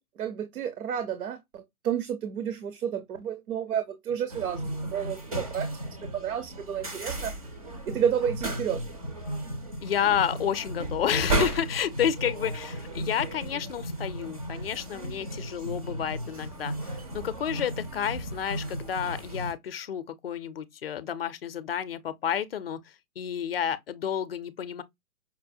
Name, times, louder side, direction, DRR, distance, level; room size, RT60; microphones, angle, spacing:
voice 1, 0.2-4.6 4.9-5.7 6.0-7.3 7.9-8.8, right 8 dB, 70° right, 0.8 m, -30 dB
sound 1, 4.3-19.5, right 1 dB, 25° right, 0.4 m, -34 dB
voice 2, 9.8-24.8, left 9 dB, 45° left, 0.5 m, -30 dB
5.5 x 2.1 x 2.6 m
hypercardioid pair, 150°, 45 cm